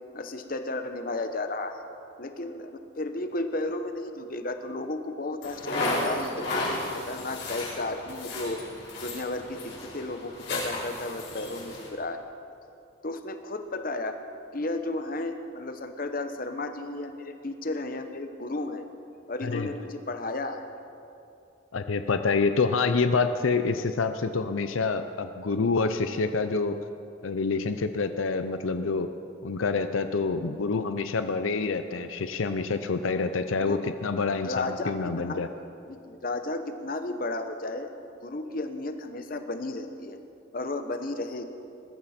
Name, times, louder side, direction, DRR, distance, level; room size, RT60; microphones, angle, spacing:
voice 1, 0.1-1.8 2.2-8.6 9.0-12.2 13.0-14.2 14.5-18.8 19.3-20.7 33.6-33.8 34.3-35.4 35.9-37.9 38.2-40.2 40.5-41.5, left 2 dB, 45° left, 7 dB, 0.9 m, -33 dB
sound 1, 5.4-11.9, left 2 dB, 65° left, 4.8 m, -34 dB
voice 2, 21.7-26.8 27.2-29.1 29.4-35.5, left 4 dB, 85° left, 9 dB, 0.6 m, -27 dB
20.5 x 14.0 x 4.3 m, 2.6 s
head